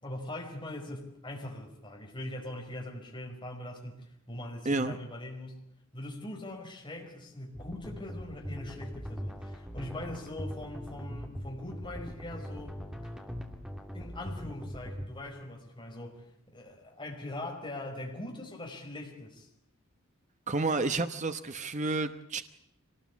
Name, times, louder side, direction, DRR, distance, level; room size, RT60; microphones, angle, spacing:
voice 1, 0.0-5.6 5.9-13.1 13.9-19.5, left 1 dB, 25° left, 0 dB, 5.2 m, -42 dB
voice 2, 4.6-5.0 20.5-22.4, right 3 dB, 35° right, 9 dB, 1.0 m, -30 dB
sound 1, 7.5-15.1, equal, 5° right, 2.7 m, -41 dB
25.0 x 19.5 x 8.4 m, 0.77 s
head